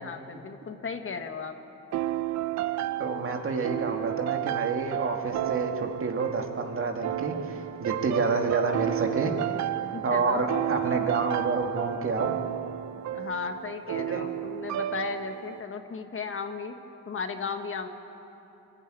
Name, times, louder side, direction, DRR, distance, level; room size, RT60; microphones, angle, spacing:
voice 1, 0.0-1.5 9.8-10.4 13.1-16.7 17.1-17.9, left 5 dB, 45° left, 6 dB, 1.5 m, -35 dB
sound 1, 1.9-15.6, right 13 dB, 65° right, 0.7 m, -32 dB
voice 2, 3.0-9.3 10.0-12.4 13.9-14.2, right 4 dB, 45° right, 3 dB, 2.2 m, -29 dB
24.0 x 12.5 x 9.1 m, 2.9 s
cardioid pair, 90°, 30 cm